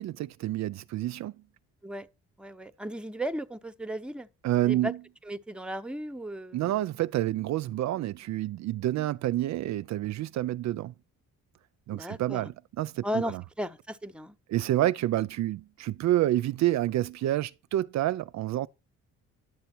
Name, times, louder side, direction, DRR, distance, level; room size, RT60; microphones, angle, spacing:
voice 1, 0.0-1.3 4.4-5.0 6.5-10.9 11.9-13.4 14.5-18.7, right 14 dB, 65° right, 0.5 m, -28 dB
voice 2, 2.4-4.3 4.6-4.9 5.2-6.8 11.9-12.5 13.0-14.4, equal, 5° right, 0.8 m, -35 dB
10.5 x 6.8 x 4.4 m
cardioid pair, 90°, 30 cm